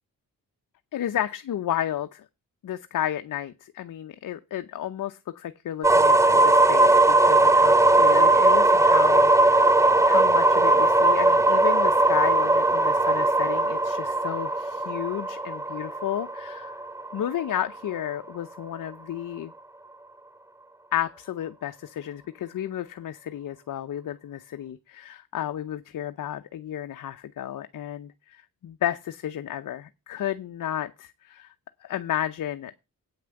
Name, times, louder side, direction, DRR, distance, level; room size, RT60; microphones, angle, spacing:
voice 1, 0.9-2.3 2.6-16.8 17.1-19.5 20.9-31.5 31.8-32.7, left 11 dB, 60° left, 0.7 m, -32 dB
sound 1, 5.8-17.6, right 2 dB, 10° right, 0.6 m, -19 dB
8.7 x 6.0 x 7.0 m
cardioid pair, 65°, 35 cm